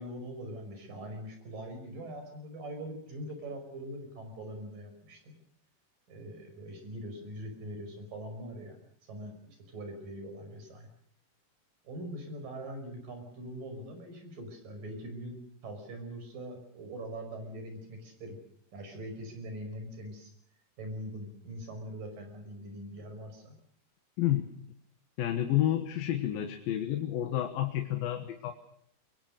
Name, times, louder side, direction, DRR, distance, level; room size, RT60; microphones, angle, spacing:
voice 1, 0.0-5.4 6.1-10.9 11.8-18.4 18.7-20.3 20.8-23.6, right 1 dB, 70° right, 5 dB, 7.0 m, -42 dB
voice 2, 24.2-24.5 25.2-28.5, left 12 dB, 85° left, 6 dB, 3.2 m, -30 dB
24.5 x 22.0 x 6.6 m, 0.69 s
omnidirectional pair, 4.0 m